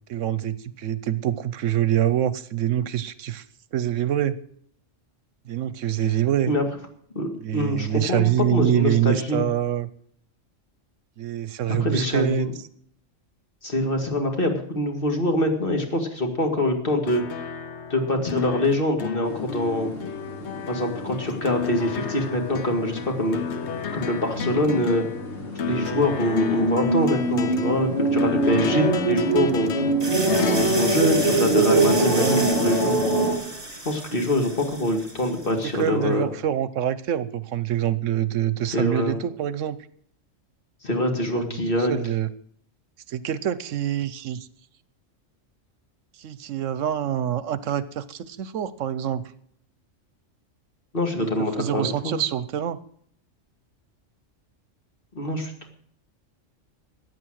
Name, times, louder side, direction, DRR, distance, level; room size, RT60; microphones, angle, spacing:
voice 1, 0.1-3.4 3.7-4.3 5.5-6.5 7.4-9.9 11.2-12.5 31.6-32.5 35.7-39.8 41.3-42.3 43.1-44.5 46.2-49.2 51.2-52.8, right 11 dB, 75° right, 16 dB, 1.0 m, -25 dB
voice 2, 7.2-8.2 8.5-9.4 11.7-12.5 13.6-17.5 17.9-19.9 20.7-23.6 23.9-25.1 25.6-29.7 30.3-32.9 33.9-36.3 38.7-39.2 40.8-41.9 50.9-52.2 55.1-55.5, left 1 dB, 45° left, 3 dB, 2.3 m, -24 dB
sound 1, 17.0-32.0 33.2-33.3, left 7 dB, 65° left, 1.0 m, -33 dB
sound 2, 19.2-33.4, right 2 dB, 85° left, 3.4 m, -25 dB
sound 3, 30.0-35.7, right 2 dB, 30° right, 2.9 m, -32 dB
15.0 x 9.3 x 6.3 m, 0.63 s
omnidirectional pair, 1.3 m